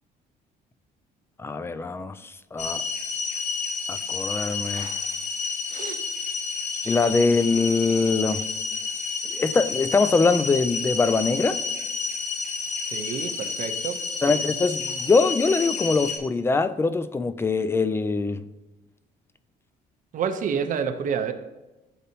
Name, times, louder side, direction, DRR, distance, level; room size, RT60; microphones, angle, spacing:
voice 1, 1.4-2.8 3.9-4.9 6.9-8.4 9.3-11.6 14.2-18.4, left 4 dB, 15° left, 13 dB, 0.3 m, -23 dB
sound 1, 2.6-16.2, left 5 dB, 45° left, 1.3 m, -30 dB
voice 2, 5.7-6.0 12.9-14.0 14.3-14.4 20.1-21.3, right 7 dB, 50° right, 7 dB, 0.7 m, -28 dB
11.5 x 4.0 x 2.8 m, 1.0 s
cardioid pair, 110°, 17 cm